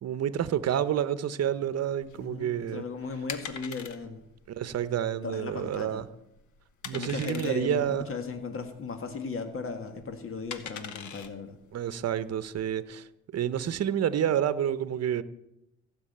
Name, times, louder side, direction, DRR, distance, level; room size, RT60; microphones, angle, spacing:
voice 1, 0.0-2.8 4.5-6.1 6.8-8.1 11.7-15.2, right 10 dB, 55° right, 0.9 m, -29 dB
sound 1, 2.0-12.6, left 7 dB, 75° left, 1.3 m, -44 dB
voice 2, 2.2-4.2 5.2-6.0 6.9-11.6, left 4 dB, 45° left, 1.9 m, -37 dB
15.5 x 6.3 x 8.7 m
cardioid pair, 90°, 30 cm